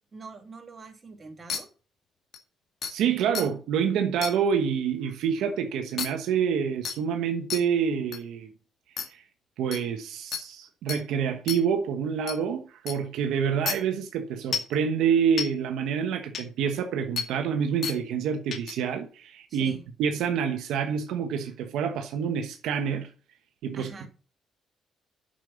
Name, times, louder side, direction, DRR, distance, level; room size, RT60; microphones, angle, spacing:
voice 1, 0.1-1.7 19.5-19.8 23.7-24.1, right 4 dB, 35° right, 2.6 m, -44 dB
sound 1, 1.5-1.6 2.3-2.4 2.8-2.9 3.3-3.5 4.2-4.3 6.0-6.1 6.8-7.0 7.5-7.6 8.1-8.2 9.0-9.1 9.7-9.8 10.3-10.4 10.9-11.0 11.5-11.6 12.3-12.4 12.9-13.0 13.7-13.8 14.5-14.7 15.4-15.5 16.3-16.4 17.2-17.3 17.8-18.0 18.5-18.7, left 7 dB, 60° left, 2.0 m, -30 dB
voice 2, 2.9-8.5 9.1-9.2 9.6-23.1 23.6-24.1, right 7 dB, 85° right, 1.2 m, -27 dB
7.4 x 6.7 x 7.0 m
cardioid pair, 90°, 0 cm